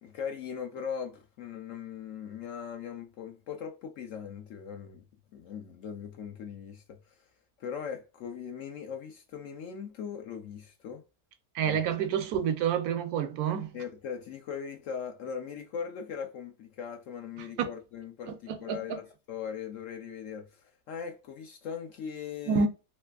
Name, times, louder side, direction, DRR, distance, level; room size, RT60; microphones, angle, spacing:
voice 1, 0.0-5.0 5.3-7.2 7.6-11.0 11.6-11.8 13.7-22.7, left 7 dB, 65° left, 0.8 m, -40 dB
voice 2, 11.5-13.8 17.6-17.7 18.3-19.0 22.5-22.7, right 7 dB, 75° right, 1.1 m, -28 dB
3.2 x 3.2 x 2.3 m
omnidirectional pair, 1.7 m